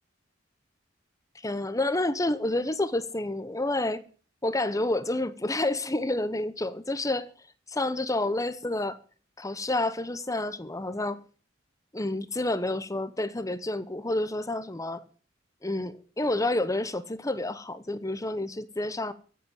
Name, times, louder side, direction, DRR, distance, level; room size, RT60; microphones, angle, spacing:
voice 1, 1.4-4.0 4.4-7.3 7.7-9.0 9.4-11.2 11.9-15.0 15.6-19.1, left 2 dB, 15° left, 1.0 m, -29 dB
15.0 x 8.2 x 8.9 m
head